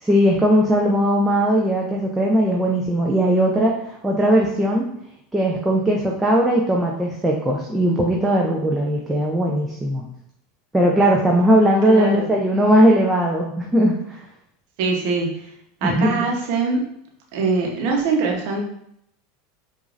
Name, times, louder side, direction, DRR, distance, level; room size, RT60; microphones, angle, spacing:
voice 1, 0.0-4.9 5.3-10.0 10.7-14.0 15.8-16.3, equal, 10° right, -2 dB, 0.6 m, -18 dB
voice 2, 11.8-12.3 14.8-15.4 15.8-16.8 17.3-18.6, right 4 dB, 60° right, 1 dB, 1.0 m, -22 dB
4.7 x 2.6 x 2.5 m, 0.72 s
hypercardioid pair, 90°, 0 cm